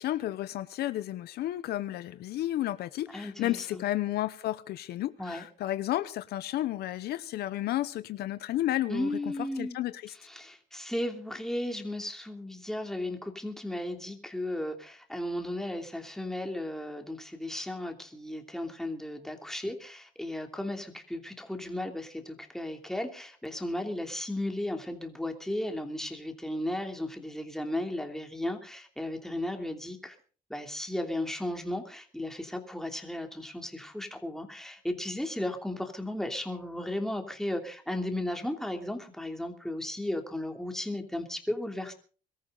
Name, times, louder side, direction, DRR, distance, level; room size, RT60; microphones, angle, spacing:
voice 1, 0.0-9.1 9.6-10.1, left 14 dB, 70° left, 0.8 m, -32 dB
voice 2, 3.1-3.8 5.2-5.5 8.9-9.8 10.1-30.2 30.5-41.9, left 1 dB, 5° left, 2.9 m, -35 dB
22.5 x 14.0 x 4.0 m
cardioid pair, 110°, 17 cm